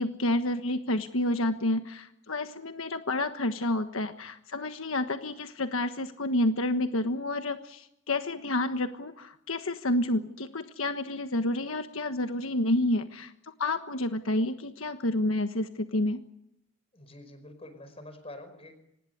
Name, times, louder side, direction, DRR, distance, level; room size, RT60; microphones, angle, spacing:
voice 1, 0.0-16.2, left 1 dB, 80° left, 7 dB, 1.4 m, -29 dB
voice 2, 16.9-18.8, left 1 dB, 30° left, 10 dB, 5.1 m, -46 dB
25.5 x 20.0 x 8.1 m, 0.79 s
head